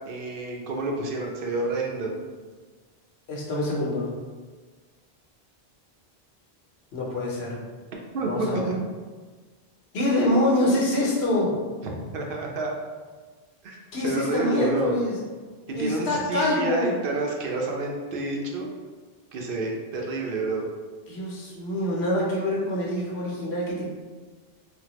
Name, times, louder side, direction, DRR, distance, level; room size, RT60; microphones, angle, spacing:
voice 1, 0.1-2.1 8.1-8.8 12.1-12.7 13.6-13.8 14.0-14.9 15.8-18.7 19.3-20.6, right 3 dB, 65° right, 0 dB, 0.7 m, -29 dB
voice 2, 3.3-4.1 6.9-7.6 8.3-8.7 9.9-11.5 13.9-15.2 15.7-16.9 21.1-23.8, left 1 dB, 90° left, -4 dB, 1.1 m, -25 dB
3.4 x 2.1 x 3.0 m, 1.4 s
omnidirectional pair, 1.0 m